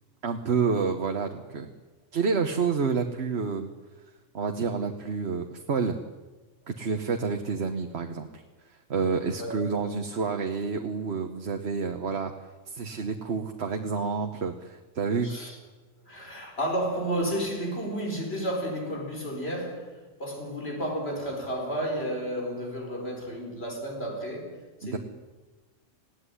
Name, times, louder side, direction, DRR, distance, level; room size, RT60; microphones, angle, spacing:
voice 1, 0.2-1.7 2.1-3.7 4.3-6.0 6.7-8.4 8.9-12.3 12.7-15.3 24.8-25.0, right 5 dB, 60° right, 1.4 m, -29 dB
voice 2, 15.2-15.6 16.0-25.0, equal, 55° left, 5.0 m, -32 dB
19.5 x 16.5 x 9.9 m
omnidirectional pair, 1.3 m